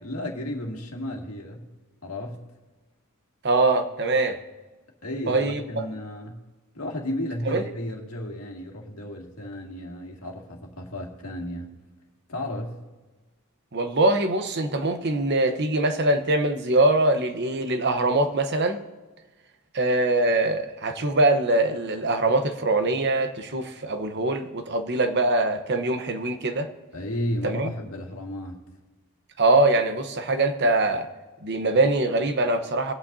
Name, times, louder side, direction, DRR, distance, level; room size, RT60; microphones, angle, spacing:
voice 1, 0.0-1.7 2.0-2.4 5.0-6.4 6.7-11.7 12.3-12.8 26.9-28.7, left 1 dB, 75° left, 0 dB, 2.1 m, -33 dB
voice 2, 3.4-4.4 5.3-5.8 7.5-7.6 13.7-18.8 19.7-26.7 27.4-27.7 29.4-31.1 31.4-32.9, right 2 dB, 50° right, 7 dB, 1.0 m, -23 dB
23.0 x 8.8 x 2.7 m, 1.2 s
head